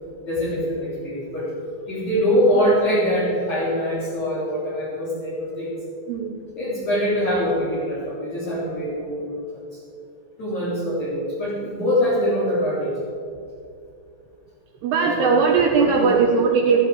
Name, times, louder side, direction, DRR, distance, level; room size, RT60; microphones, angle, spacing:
voice 1, 0.3-1.5 1.9-5.8 6.6-9.6 10.4-12.9 15.0-15.5 15.8-16.2, equal, 40° left, -10 dB, 4.7 m, -23 dB
voice 2, 14.8-16.8, right 5 dB, 70° right, 0 dB, 2.8 m, -19 dB
14.5 x 14.5 x 5.0 m, 2.4 s
omnidirectional pair, 5.4 m